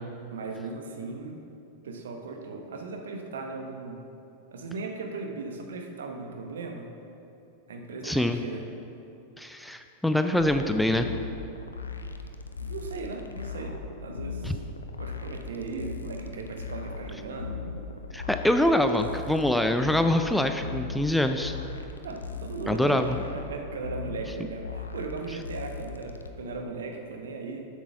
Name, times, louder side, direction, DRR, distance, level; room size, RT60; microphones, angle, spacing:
voice 1, 0.3-1.4 1.8-4.0 4.5-6.9 7.7-8.6 12.6-13.8 14.0-14.6 15.0-17.6 22.0-23.1 23.3-27.7, right 3 dB, 65° right, 3 dB, 1.0 m, -37 dB
voice 2, 8.0-8.4 9.4-11.1 14.4-14.6 18.1-21.6 22.7-23.2, left 1 dB, 5° left, 7 dB, 0.4 m, -24 dB
sound 1, 10.4-26.3, left 4 dB, 75° left, 0.5 m, -38 dB
8.0 x 6.1 x 5.7 m, 2.8 s
figure-of-eight pair, 90°, 0 cm